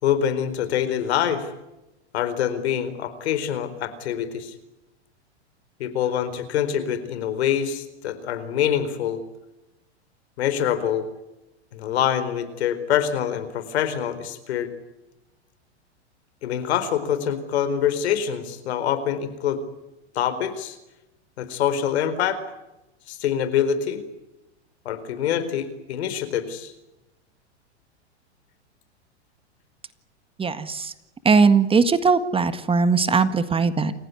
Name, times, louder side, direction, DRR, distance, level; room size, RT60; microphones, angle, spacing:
voice 1, 0.0-1.5 2.1-4.5 5.8-9.2 10.4-11.0 11.7-14.7 16.4-19.6 20.1-20.8 21.4-22.4 23.1-24.0 24.8-26.7, left 9 dB, 70° left, 12 dB, 4.4 m, -25 dB
voice 2, 30.4-30.9 31.2-33.9, right 4 dB, 15° right, 12 dB, 1.7 m, -19 dB
29.0 x 16.0 x 9.7 m, 0.95 s
hypercardioid pair, 105°, 34 cm